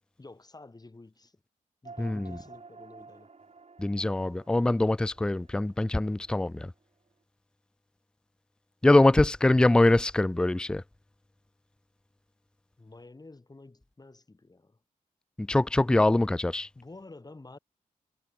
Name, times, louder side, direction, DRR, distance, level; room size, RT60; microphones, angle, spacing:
voice 1, 0.2-1.4 1.8-3.3 12.8-14.8 16.7-17.6, left 2 dB, 25° left, 3.1 m, -50 dB
sound 1, 1.8-6.6, right 4 dB, 45° right, 7.8 m, -51 dB
voice 2, 2.0-2.3 3.8-6.7 8.8-10.8 15.4-16.7, left 2 dB, 5° left, 0.3 m, -23 dB
cardioid pair, 65°, 15 cm